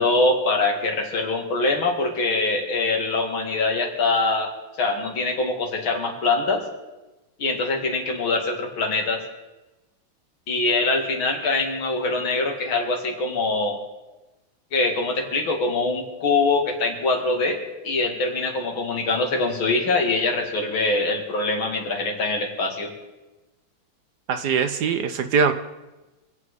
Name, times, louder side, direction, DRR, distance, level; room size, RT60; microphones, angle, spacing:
voice 1, 0.0-4.5 4.8-6.6 7.4-9.2 10.5-13.8 14.7-17.6 17.8-22.9, left 3 dB, 80° left, 2 dB, 3.0 m, -23 dB
voice 2, 24.3-25.5, right 5 dB, 65° right, 9 dB, 1.2 m, -22 dB
25.5 x 8.9 x 4.9 m, 1.1 s
omnidirectional pair, 2.2 m